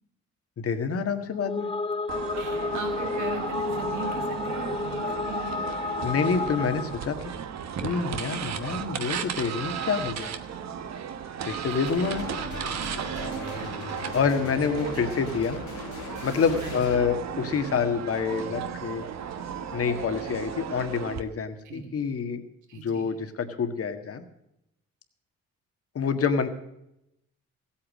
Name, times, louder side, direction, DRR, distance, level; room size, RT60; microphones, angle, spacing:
voice 1, 0.6-1.7 6.0-7.2 7.8-10.3 11.5-12.3 14.1-15.6 16.2-19.1 19.7-22.4 22.7-24.2 26.0-26.5, left 5 dB, 50° left, 8 dB, 1.7 m, -27 dB
sound 1, 1.3-7.1, left 4 dB, 20° left, 0.7 m, -31 dB
sound 2, 2.1-21.2, right 8 dB, 60° right, 1.2 m, -35 dB
voice 2, 2.3-5.7 11.7-11.8 13.4-13.7 16.6-16.8 21.6-21.9 22.7-23.2, right 3 dB, 80° right, 4 dB, 2.8 m, -39 dB
sound 3, 11.9-17.0, left 5 dB, 85° left, 2.8 m, -39 dB
15.5 x 8.7 x 6.4 m, 0.82 s
cardioid pair, 90°, 30 cm